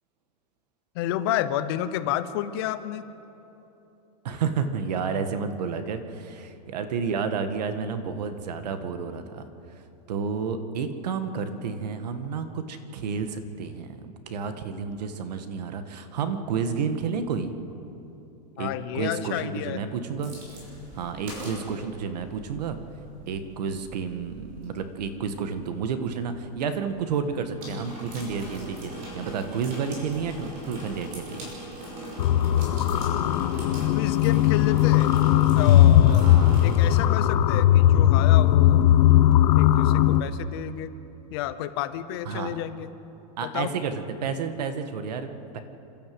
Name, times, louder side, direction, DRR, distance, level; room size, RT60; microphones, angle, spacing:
voice 1, 0.9-3.0 18.6-19.8 33.2-35.1 35.5-36.3 36.6-38.9 39.6-40.9 41.3-42.9 43.4-43.7, left 12 dB, 40° left, 12 dB, 0.8 m, -31 dB
voice 2, 4.2-9.4 9.7-17.5 18.5-20.3 21.0-22.8 23.3-31.5 36.1-36.9 42.3-42.6 43.4-45.6, right 6 dB, 80° right, 9 dB, 1.9 m, -31 dB
sound 1, 20.2-37.0, right 1 dB, 35° right, 6.0 m, -41 dB
sound 2, 32.2-40.2, left 12 dB, 75° left, 1.0 m, -18 dB
28.5 x 13.0 x 7.9 m, 3.0 s
supercardioid pair, 180°, 21 cm